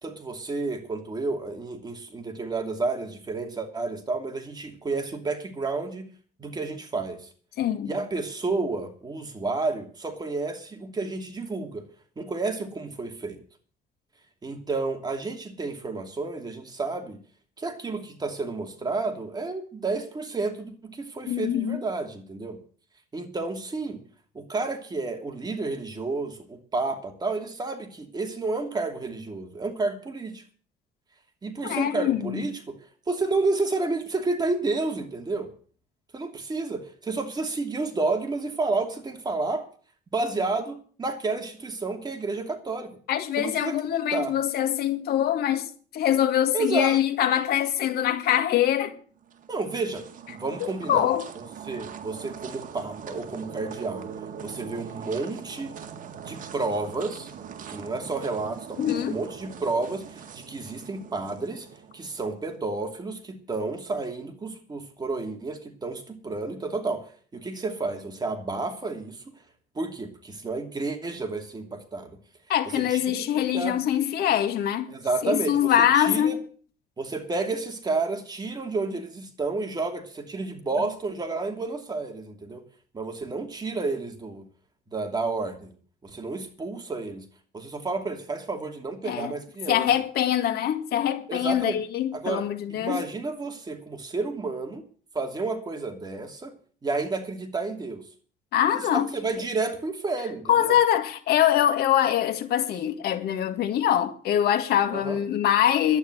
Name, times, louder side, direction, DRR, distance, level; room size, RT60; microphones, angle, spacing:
voice 1, 0.0-6.1 6.4-7.3 7.8-11.8 12.2-13.4 14.4-17.2 17.6-22.6 23.1-24.0 24.3-30.4 31.4-32.8 33.1-35.5 36.1-39.7 40.1-42.9 43.4-43.8 44.1-44.3 46.5-47.0 49.5-51.1 51.7-54.1 54.4-55.7 56.2-57.3 57.7-61.7 61.9-69.2 69.7-72.2 72.7-73.2 73.5-73.8 74.9-76.4 77.0-82.6 82.9-84.4 84.9-85.7 86.0-87.2 87.5-89.9 91.3-91.8 92.1-92.5 92.8-94.8 95.1-96.5 96.8-98.0 98.9-100.8 104.9-105.2, right 3 dB, 25° right, 2.8 m, -31 dB
voice 2, 7.6-7.9 21.3-21.8 31.6-32.5 43.1-49.0 50.6-51.3 58.8-59.2 72.5-74.9 75.2-76.4 89.0-89.3 89.7-93.0 98.5-99.1 100.5-106.0, left 10 dB, 70° left, 1.9 m, -24 dB
sound 1, 49.2-62.5, right 7 dB, 50° right, 1.8 m, -42 dB
11.5 x 9.5 x 8.0 m
cardioid pair, 110°, 17 cm